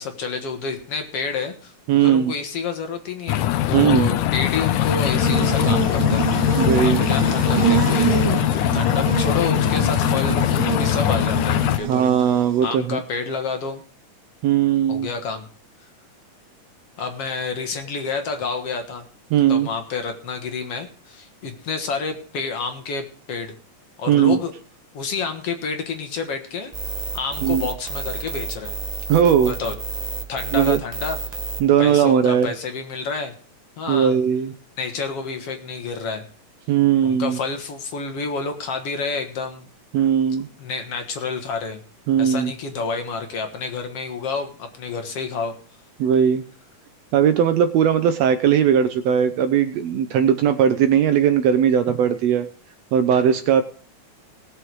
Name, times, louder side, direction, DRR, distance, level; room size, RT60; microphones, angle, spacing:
voice 1, 0.0-8.4 8.7-12.0 12.6-13.8 14.9-15.5 17.0-19.0 19.5-23.5 24.0-24.5 24.9-26.7 27.1-28.8 29.4-29.7 30.3-31.4 31.8-33.3 33.8-34.2 34.8-36.2 37.0-39.7 40.6-41.8 42.2-45.5, left 4 dB, 55° left, 6 dB, 2.1 m, -29 dB
voice 2, 1.9-2.3 3.7-4.1 6.6-7.0 11.9-13.0 14.4-15.1 19.3-19.7 24.1-24.4 27.4-27.6 29.1-29.6 30.5-30.8 31.6-32.5 33.9-34.5 36.7-37.4 39.9-40.5 42.1-42.5 46.0-46.4 47.1-52.5 52.9-53.6, right 8 dB, 75° right, 10 dB, 1.6 m, -18 dB
sound 1, 3.3-11.8, left 13 dB, 85° left, 2.2 m, -21 dB
Buzz, 4.6-12.7, right 7 dB, 50° right, 1.8 m, -26 dB
sound 2, 26.7-31.6, right 4 dB, 90° right, 0.3 m, -30 dB
18.5 x 6.6 x 4.7 m, 0.42 s
omnidirectional pair, 3.4 m